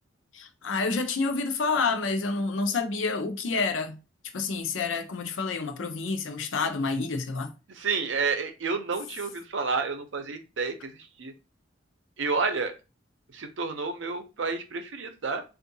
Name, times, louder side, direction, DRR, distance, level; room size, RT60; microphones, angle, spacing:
voice 1, 0.3-4.0 4.3-7.5, left 4 dB, 85° left, 0.6 m, -28 dB
voice 2, 7.7-11.3 12.2-12.7 13.3-15.4, right 4 dB, 75° right, 0.6 m, -30 dB
3.6 x 2.4 x 2.7 m
head